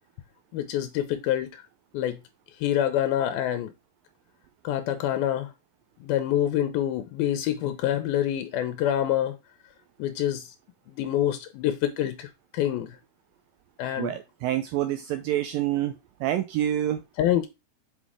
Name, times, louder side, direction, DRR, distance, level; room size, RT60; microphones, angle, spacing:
voice 1, 0.5-1.6 1.9-2.2 2.6-3.7 4.6-5.5 6.0-9.4 10.0-10.5 10.9-13.0 13.8-14.1 17.2-17.5, left 11 dB, 80° left, 2.4 m, -26 dB
voice 2, 14.0-17.0, right 12 dB, 85° right, 2.1 m, -27 dB
6.3 x 5.9 x 3.6 m
omnidirectional pair, 4.6 m